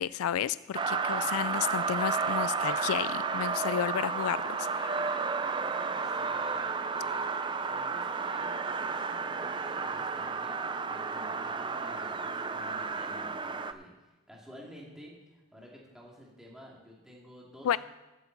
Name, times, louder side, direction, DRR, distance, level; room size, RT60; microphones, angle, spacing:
voice 1, 0.0-5.2 17.6-17.8, left 9 dB, 85° left, 17 dB, 0.3 m, -32 dB
sound 1, 0.7-13.7, right 5 dB, 20° right, 0.4 m, -32 dB
voice 2, 6.0-7.3 7.6-17.8, equal, 5° right, -4 dB, 2.3 m, -52 dB
14.5 x 8.9 x 4.0 m, 1.1 s
head